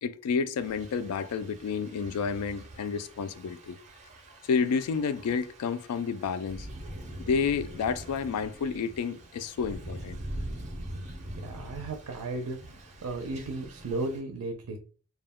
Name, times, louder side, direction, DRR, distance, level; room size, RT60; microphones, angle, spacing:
voice 1, 0.0-3.8 4.4-6.7 7.2-10.2, left 5 dB, 80° left, 0.3 m, -30 dB
Thunder / Rain, 0.6-14.2, right 1 dB, 35° right, 0.5 m, -43 dB
voice 2, 11.3-14.8, right 2 dB, 85° right, 0.5 m, -35 dB
2.3 x 2.1 x 3.5 m
head